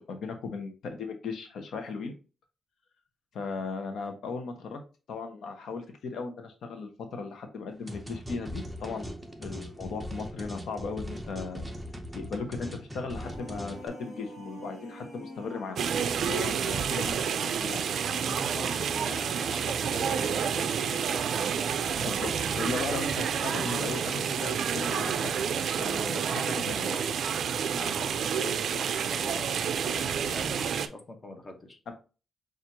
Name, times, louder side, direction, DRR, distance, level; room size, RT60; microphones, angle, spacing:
voice 1, 0.1-2.1 3.3-4.8 5.1-11.7 12.1-15.8 16.2-17.8 22.0-25.3 25.8-27.2 31.9-32.0, left 4 dB, 80° left, 6 dB, 0.7 m, -37 dB
sound 1, 7.9-13.9, equal, 5° right, 0.6 m, -40 dB
sound 2, 13.0-16.0, equal, 40° left, 1.9 m, -45 dB
sound 3, 15.8-30.9, right 7 dB, 70° right, 0.3 m, -29 dB
voice 2, 18.1-21.4 27.7-31.8, left 2 dB, 25° left, 3 dB, 0.9 m, -43 dB
5.8 x 2.4 x 2.8 m, 0.33 s
wide cardioid pair, 145°, 0 cm